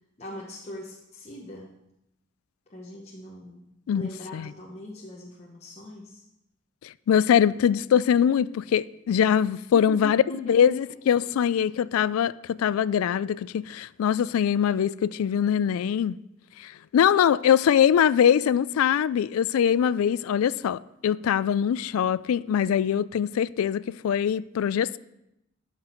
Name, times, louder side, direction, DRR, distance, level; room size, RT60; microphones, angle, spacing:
voice 1, 0.2-1.7 2.7-3.6 3.9-6.2 9.7-10.7, left 1 dB, 30° left, 0.9 m, -41 dB
voice 2, 7.1-16.2 16.6-25.0, left 8 dB, 90° left, 0.3 m, -23 dB
12.5 x 6.0 x 4.5 m
head